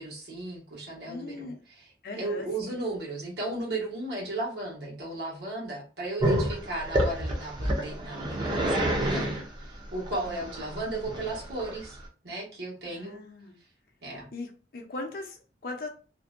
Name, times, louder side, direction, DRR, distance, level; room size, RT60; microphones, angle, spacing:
voice 1, 0.0-1.5 2.2-12.0 12.2-13.2 14.0-14.3, right 2 dB, 70° right, -3 dB, 1.1 m, -35 dB
voice 2, 1.1-1.6 2.0-2.7 10.2-10.6 12.8-13.6 14.3-15.9, left 2 dB, 55° left, 2 dB, 0.5 m, -39 dB
Growling, 6.2-12.1, right 1 dB, 25° right, 0.5 m, -28 dB
2.6 x 2.1 x 2.4 m, 0.36 s
head